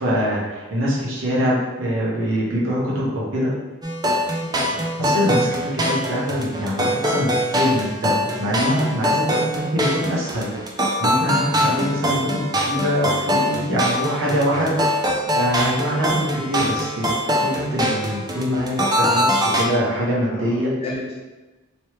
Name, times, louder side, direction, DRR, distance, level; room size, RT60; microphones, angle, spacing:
voice 1, 0.0-3.5 4.6-10.5 11.0-14.8 15.3-20.7, equal, 70° right, -6 dB, 1.0 m, -24 dB
sound 1, 3.8-19.6, equal, 20° right, 0.4 m, -23 dB
voice 2, 4.4-4.8 9.3-9.8 17.6-17.9 20.3-21.2, left 1 dB, 30° left, -5 dB, 0.8 m, -34 dB
3.1 x 3.0 x 3.1 m, 1.2 s
head